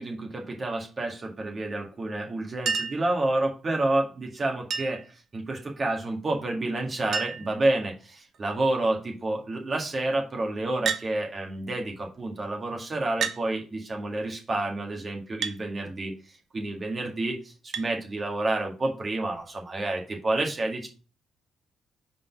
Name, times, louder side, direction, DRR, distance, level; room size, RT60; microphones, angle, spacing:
voice 1, 0.0-5.0 5.3-16.1 16.5-20.9, right 2 dB, 35° right, 1 dB, 1.9 m, -29 dB
Chink clink, 2.7-3.1 4.7-5.1 6.5-6.6 6.8-6.9 7.1-7.6 8.3-8.7 10.8-11.1 12.2-12.3 13.2-13.4 15.4-15.6 17.7-17.9 19.3-19.4, right 6 dB, 65° right, 0.8 m, -30 dB
4.9 x 4.0 x 5.8 m, 0.35 s
cardioid pair, 90°, 0 cm